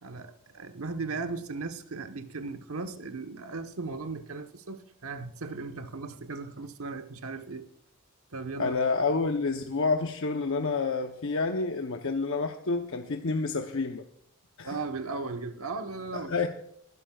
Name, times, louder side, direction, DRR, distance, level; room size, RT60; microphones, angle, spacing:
voice 1, 0.0-7.7 8.3-8.8 14.6-16.3, right 3 dB, 75° right, 1.1 m, -37 dB
voice 2, 8.6-14.0 14.6-14.8 16.1-16.5, left 4 dB, 65° left, 0.8 m, -29 dB
20.5 x 11.5 x 2.4 m
head